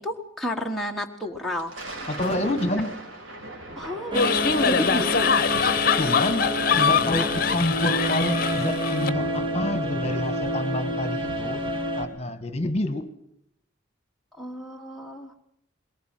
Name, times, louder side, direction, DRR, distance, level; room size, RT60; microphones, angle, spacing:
voice 1, 0.0-1.7 2.3-2.4 3.8-5.3 14.4-15.3, equal, ahead, -1 dB, 1.5 m, -32 dB
Thunder, 1.4-12.1, right 1 dB, 85° right, 5.5 m, -39 dB
voice 2, 2.1-3.0 6.0-11.6 12.0-13.1, left 1 dB, 30° left, 12 dB, 1.8 m, -28 dB
sound 1, 4.1-9.1, left 6 dB, 45° left, 1.0 m, -23 dB
sound 2, 4.1-12.1, equal, 25° right, 2.9 m, -28 dB
22.0 x 19.5 x 7.6 m, 0.74 s
head